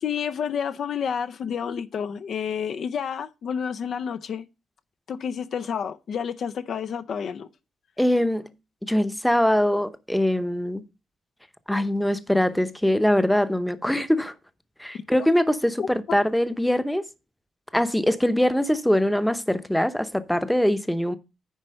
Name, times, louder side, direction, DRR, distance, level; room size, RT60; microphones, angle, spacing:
voice 1, 0.0-4.5 5.1-7.5 15.8-16.2, left 7 dB, 60° left, 0.5 m, -30 dB
voice 2, 8.0-8.5 8.8-10.8 11.7-14.3 14.8-17.0 17.7-21.2, left 1 dB, 5° left, 0.8 m, -22 dB
9.9 x 4.4 x 6.3 m
cardioid pair, 115°, 0 cm